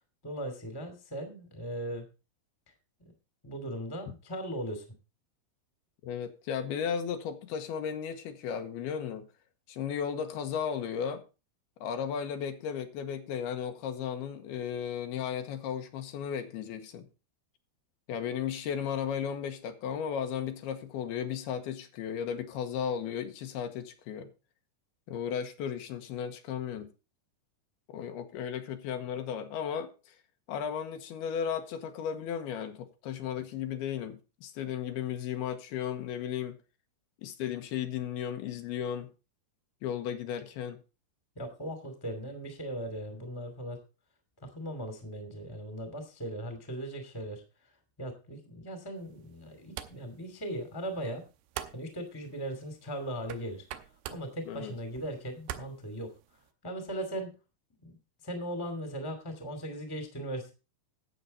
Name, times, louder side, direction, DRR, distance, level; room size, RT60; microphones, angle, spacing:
voice 1, 0.2-2.1 3.0-3.1 3.4-4.9 41.3-43.8 44.4-47.4 48.0-51.2 51.7-53.6 54.1-56.1 56.6-57.3 57.8-58.0 58.2-60.5, right 1 dB, 10° left, 1.6 m, -38 dB
voice 2, 6.0-9.3 9.7-11.2 11.8-17.1 18.1-24.3 25.1-26.9 27.9-30.2 30.5-36.6 37.2-39.1 39.8-40.8 54.5-54.7, left 8 dB, 80° left, 3.0 m, -35 dB
sound 1, 49.0-56.5, right 12 dB, 85° right, 2.8 m, -47 dB
12.5 x 8.3 x 4.2 m
omnidirectional pair, 4.6 m